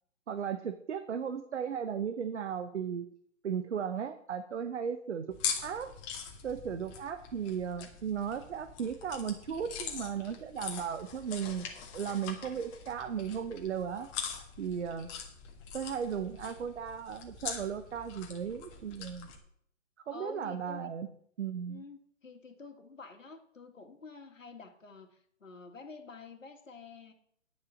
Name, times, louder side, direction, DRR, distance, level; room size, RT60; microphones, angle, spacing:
voice 1, 0.3-3.1 3.4-5.3 5.6-5.9 6.4-11.7 11.9-14.1 14.6-15.1 15.7-19.3 20.1-21.1 21.4-21.8, right 7 dB, 65° right, 9 dB, 1.0 m, -36 dB
sound 1, 5.3-19.4, left 7 dB, 25° left, 1.7 m, -42 dB
voice 2, 20.1-20.9 21.7-27.1, left 4 dB, 80° left, 5 dB, 2.1 m, -49 dB
10.0 x 6.8 x 5.9 m, 0.66 s
figure-of-eight pair, 140°, 38 cm